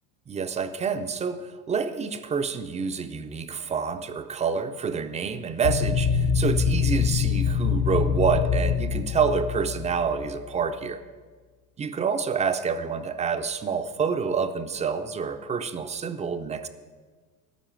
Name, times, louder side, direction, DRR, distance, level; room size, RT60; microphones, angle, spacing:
voice 1, 0.3-11.0 11.8-16.7, right 6 dB, 15° right, 9 dB, 0.4 m, -28 dB
sound 1, 5.6-10.3, left 7 dB, 50° left, 0.8 m, -24 dB
13.5 x 5.5 x 8.6 m, 1.5 s
supercardioid pair, 105°, 50 cm